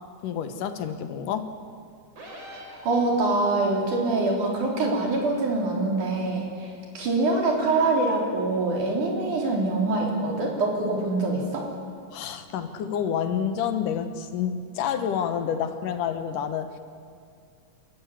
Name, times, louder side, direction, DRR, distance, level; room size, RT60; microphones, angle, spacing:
voice 1, 0.2-1.5 12.1-16.8, left 8 dB, 85° left, 9 dB, 2.8 m, -28 dB
sound 1, 2.2-3.5, equal, 50° right, 5.6 m, -43 dB
voice 2, 2.5-11.7, right 2 dB, 70° right, -1 dB, 5.2 m, -25 dB
28.0 x 13.5 x 9.9 m, 2.3 s
omnidirectional pair, 3.7 m